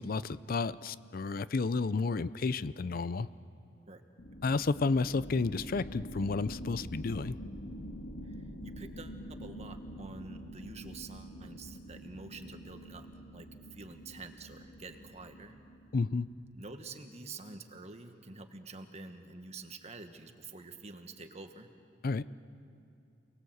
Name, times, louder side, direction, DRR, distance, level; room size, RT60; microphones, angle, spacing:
voice 1, 0.0-3.3 4.4-7.3 15.9-16.3 22.0-22.2, left 4 dB, 50° left, 16 dB, 0.5 m, -31 dB
sound 1, 4.2-16.4, equal, 70° left, 1.8 m, -46 dB
voice 2, 8.2-15.6 16.5-21.7, right 3 dB, 35° right, 7 dB, 1.5 m, -48 dB
28.5 x 20.0 x 7.9 m, 2.6 s
head